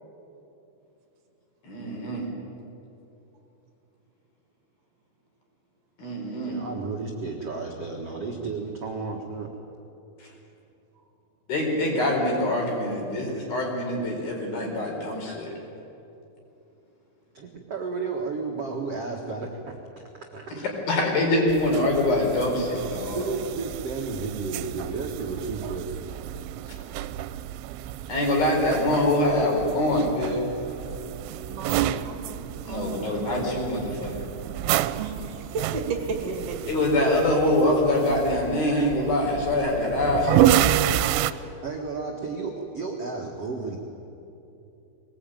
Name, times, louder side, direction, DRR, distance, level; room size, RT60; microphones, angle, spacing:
voice 1, 1.6-2.3 6.0-6.6 10.2-10.3 11.5-15.5 20.9-23.3 28.1-30.4 32.6-34.3 36.7-40.7, left 1 dB, 50° left, -1 dB, 6.0 m, -24 dB
voice 2, 6.5-9.5 17.3-19.8 20.3-20.6 21.7-21.8 22.5-22.6 23.1-26.0 41.6-43.8, right 4 dB, 60° right, 0 dB, 1.6 m, -32 dB
sound 1, 21.5-41.3, right 12 dB, 80° right, 3.0 m, -29 dB
voice 3, 31.5-33.5 35.0-36.6, right 4 dB, 45° right, 2 dB, 2.6 m, -34 dB
23.5 x 19.5 x 9.1 m, 2.9 s
omnidirectional pair, 5.5 m